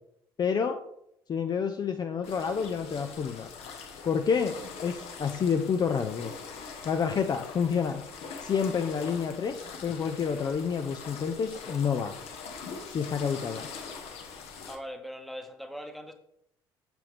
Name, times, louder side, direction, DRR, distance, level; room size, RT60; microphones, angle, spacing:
voice 1, 0.4-0.8 1.3-3.5 4.1-6.3 6.8-8.0 8.4-12.1 12.9-13.7, left 6 dB, 35° left, 7 dB, 0.5 m, -29 dB
sound 1, 2.2-14.8, left 5 dB, 55° left, 1.1 m, -43 dB
voice 2, 14.7-16.1, equal, ahead, 6 dB, 1.0 m, -40 dB
7.0 x 5.9 x 3.4 m, 0.75 s
figure-of-eight pair, 55°, 12 cm